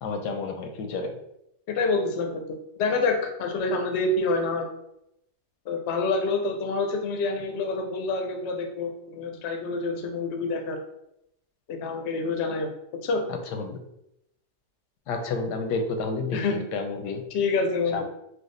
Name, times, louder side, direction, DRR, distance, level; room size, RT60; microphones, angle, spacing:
voice 1, 0.0-1.1 13.5-13.8 15.1-16.4 16.7-17.2 17.9-18.0, left 3 dB, 85° left, 5 dB, 1.2 m, -30 dB
voice 2, 1.7-2.4 2.8-4.7 5.7-10.8 11.7-12.7 13.0-13.2 16.3-16.6 17.3-18.0, left 3 dB, 65° left, 4 dB, 0.7 m, -27 dB
4.7 x 2.2 x 3.1 m, 0.81 s
omnidirectional pair, 1.8 m